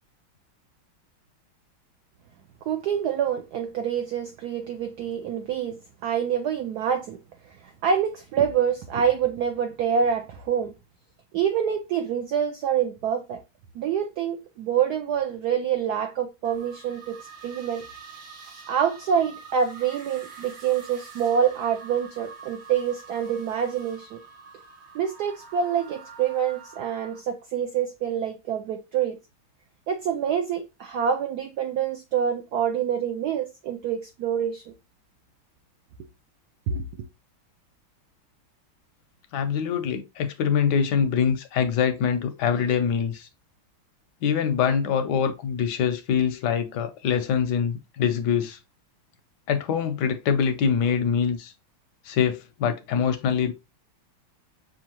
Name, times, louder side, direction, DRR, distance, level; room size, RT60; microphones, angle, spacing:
voice 1, 2.7-7.2 7.5-10.7 11.3-13.4 13.7-17.8 18.7-24.2 24.9-29.2 29.9-34.7 36.7-36.8, right 8 dB, 80° right, 0.8 m, -26 dB
sound 1, 16.4-27.2, right 5 dB, 50° right, 0.8 m, -46 dB
voice 2, 39.3-43.3 44.2-48.6 49.5-51.5 52.0-53.5, left 7 dB, 75° left, 1.0 m, -24 dB
6.3 x 2.4 x 2.9 m
omnidirectional pair, 2.3 m